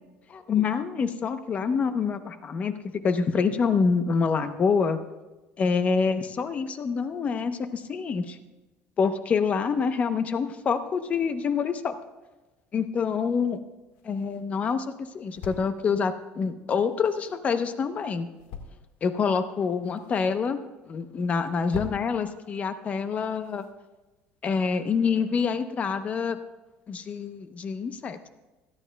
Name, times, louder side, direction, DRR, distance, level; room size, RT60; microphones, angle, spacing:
voice 1, 0.3-2.7 3.0-5.0 5.6-8.4 9.0-11.9 12.7-13.6 14.0-18.3 19.0-20.6 20.9-23.7 24.4-26.4 26.9-28.3, left 5 dB, 30° left, 10 dB, 0.8 m, -26 dB
sound 1, 13.6-24.4, left 6 dB, 75° left, 1.6 m, -47 dB
26.5 x 9.8 x 2.3 m, 1.1 s
cardioid pair, 140°, 5 cm